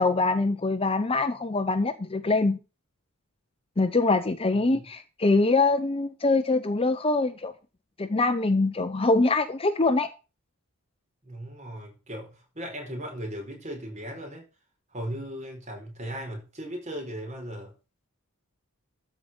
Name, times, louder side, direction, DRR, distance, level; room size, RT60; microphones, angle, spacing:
voice 1, 0.0-2.6 3.8-7.5 8.0-10.1, left 3 dB, 25° left, 0.7 m, -24 dB
voice 2, 11.2-14.5 14.9-17.7, equal, 30° right, 4.9 m, -37 dB
13.5 x 5.2 x 7.0 m
head